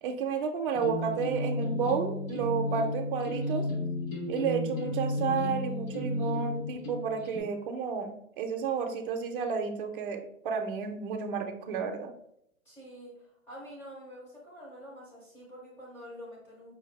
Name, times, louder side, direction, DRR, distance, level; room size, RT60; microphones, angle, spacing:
voice 1, 0.0-3.7 4.3-12.1, right 6 dB, 40° right, 4 dB, 0.5 m, -31 dB
sound 1, 0.7-7.4, left 1 dB, 60° left, 1.4 m, -33 dB
voice 2, 12.7-16.7, equal, 5° left, -5 dB, 0.5 m, -47 dB
4.8 x 2.2 x 3.2 m, 0.72 s
hypercardioid pair, 135°, 42 cm